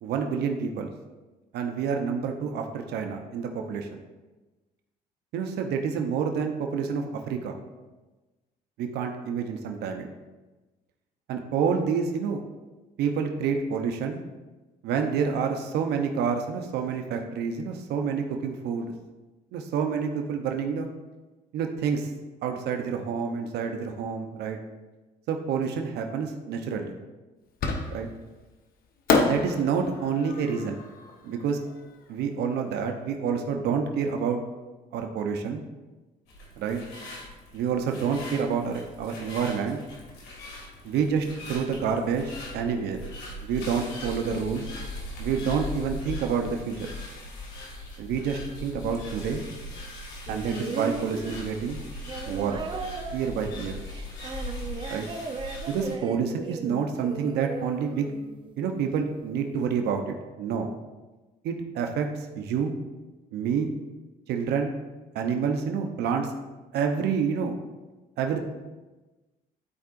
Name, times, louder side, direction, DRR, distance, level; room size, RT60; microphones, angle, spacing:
voice 1, 0.0-0.9 1.5-4.0 5.3-7.6 8.8-10.1 11.3-12.4 13.0-14.2 14.8-18.9 19.5-20.9 21.5-22.1 22.4-24.6 25.3-26.9 27.9-28.1 29.2-30.8 31.2-31.6 32.1-34.4 34.9-35.6 36.6-36.8 37.5-39.8 40.8-43.0 43.4-44.7 45.2-46.9 48.0-49.4 50.3-51.8 52.3-52.6 53.1-53.8 54.9-55.1 55.7-58.1 58.6-60.7 61.4-62.7 63.3-63.7 64.3-64.7 65.1-66.3 66.7-67.5 68.2-68.4, right 6 dB, 75° right, 4 dB, 0.8 m, -28 dB
Fireworks, 27.6-28.3 29.1-32.2, left 4 dB, 60° left, 1.0 m, -28 dB
sound 1, 36.3-55.9, left 1 dB, 90° left, 2.1 m, -39 dB
sound 2, 50.3-58.6 59.7-59.8, right 4 dB, 30° right, 0.7 m, -37 dB
12.5 x 4.6 x 2.5 m, 1.2 s
cardioid pair, 110°, 17 cm